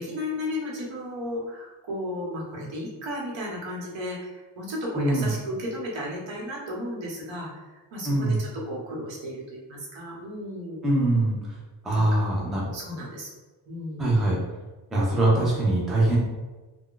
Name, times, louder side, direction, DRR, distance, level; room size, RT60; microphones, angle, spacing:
voice 1, 0.0-10.8 11.9-13.3 13.7-14.1, left 1 dB, 70° right, -3 dB, 1.0 m, -34 dB
voice 2, 5.0-5.3 8.1-8.4 10.8-11.4 11.8-12.6 14.0-14.4 14.9-16.2, right 2 dB, ahead, -5 dB, 0.4 m, -22 dB
2.4 x 2.1 x 3.7 m, 1.2 s
wide cardioid pair, 175°, 46 cm